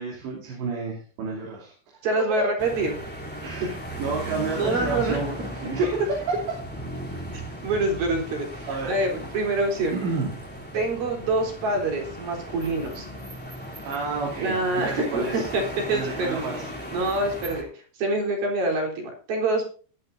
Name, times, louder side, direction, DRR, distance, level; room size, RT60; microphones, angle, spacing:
voice 1, 0.0-2.0 3.4-5.4 5.6-6.4 8.7-9.0 9.9-10.3 13.9-15.5 15.9-16.7, right 4 dB, 75° right, -3 dB, 5.2 m, -31 dB
voice 2, 2.0-3.0 4.6-5.2 7.3-10.0 10.7-13.1 14.4-16.5 16.9-19.7, right 2 dB, 55° right, 1 dB, 5.4 m, -26 dB
sound 1, 2.6-17.6, equal, 5° left, 2.2 m, -37 dB
18.0 x 11.0 x 2.6 m, 0.38 s
omnidirectional pair, 5.1 m